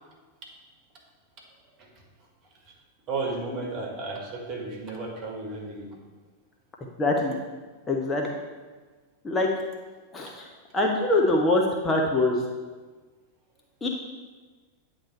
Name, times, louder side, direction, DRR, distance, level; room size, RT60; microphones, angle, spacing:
voice 1, 3.1-6.0, right 3 dB, 35° right, 0 dB, 1.6 m, -33 dB
voice 2, 7.0-7.4 7.9-8.3 9.2-9.5 10.1-10.5 10.7-12.4 13.8-13.9, left 2 dB, 15° left, 0 dB, 0.7 m, -23 dB
8.8 x 3.0 x 4.3 m, 1.3 s
figure-of-eight pair, 90°, 0 cm